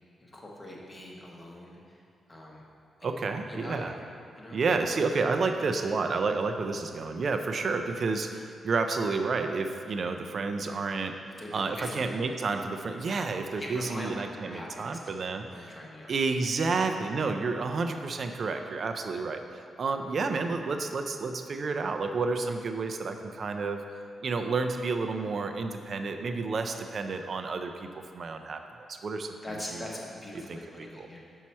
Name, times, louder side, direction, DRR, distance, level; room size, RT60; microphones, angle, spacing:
voice 1, 0.2-2.0 2.3-2.6 3.0-3.9 4.4-4.6 11.4-12.3 13.5-16.1 26.7-27.0 29.4-31.2, left 1 dB, 15° left, -2 dB, 0.8 m, -42 dB
voice 2, 3.0-3.9 4.5-11.2 11.5-15.7 16.1-23.8 24.2-27.9 28.1-28.6 28.9-29.4 30.5-30.6 31.0-31.1, right 4 dB, 40° right, 6 dB, 0.4 m, -30 dB
6.1 x 5.5 x 4.2 m, 2.3 s
wide cardioid pair, 180°, 0 cm